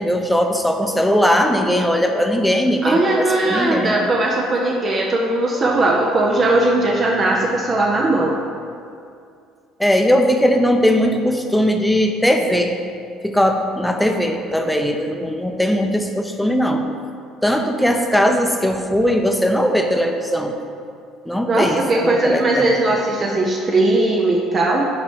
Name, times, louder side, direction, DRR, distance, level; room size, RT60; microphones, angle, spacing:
voice 1, 0.0-4.0 9.8-12.7 13.2-16.9 17.4-20.6 21.2-22.7, equal, 5° left, 4 dB, 0.7 m, -19 dB
voice 2, 2.8-8.3 21.5-24.9, right 2 dB, 40° right, -1 dB, 0.6 m, -18 dB
5.8 x 4.0 x 4.7 m, 2.4 s
hypercardioid pair, 65°, 0 cm